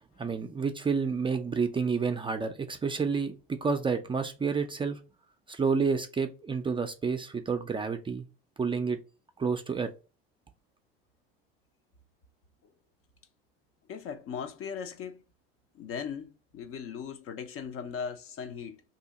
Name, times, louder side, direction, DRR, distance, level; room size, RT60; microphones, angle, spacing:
voice 1, 0.2-5.0 5.5-8.3 8.6-9.0 9.4-9.9, right 5 dB, 15° right, 0.4 m, -29 dB
voice 2, 13.9-15.2 15.7-18.8, left 7 dB, 50° left, 0.6 m, -38 dB
2.7 x 2.7 x 3.9 m
hypercardioid pair, 80°, 29 cm